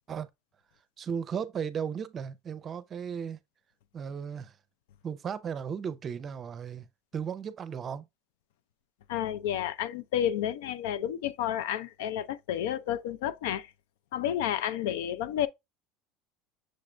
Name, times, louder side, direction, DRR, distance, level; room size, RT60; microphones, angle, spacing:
voice 1, 1.0-3.4 3.9-4.6 5.0-6.9 7.1-8.1, right 7 dB, 35° right, 0.5 m, -35 dB
voice 2, 9.1-13.7 14.1-15.5, left 10 dB, 90° left, 0.4 m, -31 dB
6.5 x 2.4 x 3.1 m
supercardioid pair, 120°, 0 cm